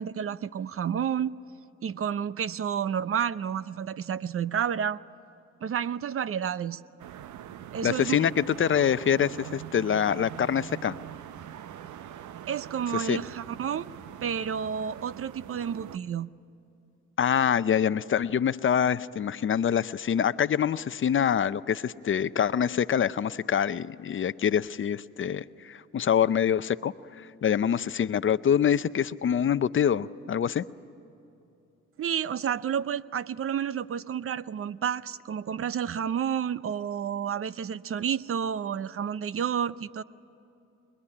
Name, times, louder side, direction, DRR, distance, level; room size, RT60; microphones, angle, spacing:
voice 1, 0.0-1.3 1.8-5.0 5.6-6.8 7.7-8.2 12.5-13.9 14.2-16.3 32.0-40.0, right 8 dB, 45° right, 16 dB, 0.7 m, -30 dB
sound 1, 7.0-16.0, right 10 dB, 75° right, 0.9 m, -43 dB
voice 2, 7.8-11.0 12.9-13.2 17.2-30.6, left 8 dB, 40° left, 14 dB, 0.6 m, -25 dB
28.0 x 21.5 x 9.9 m, 2.8 s
cardioid pair, 90°, 30 cm